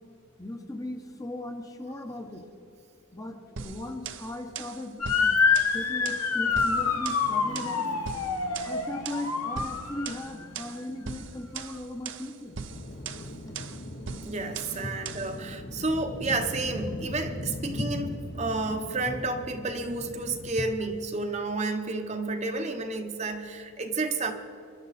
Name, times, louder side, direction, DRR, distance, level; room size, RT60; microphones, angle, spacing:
voice 1, 0.4-2.4 3.1-5.4 5.7-8.0 8.6-12.6, left 1 dB, 15° left, 4 dB, 0.9 m, -38 dB
sound 1, 3.6-15.4, right 6 dB, 55° right, 0.7 m, -40 dB
Motor vehicle (road) / Siren, 5.0-10.3, left 5 dB, 90° left, 1.4 m, -26 dB
sound 2, 12.7-20.5, left 1 dB, 45° left, 1.0 m, -39 dB
voice 2, 14.2-18.1 18.3-24.3, right 3 dB, 30° right, 5 dB, 0.9 m, -31 dB
24.5 x 11.5 x 4.2 m, 2.7 s
head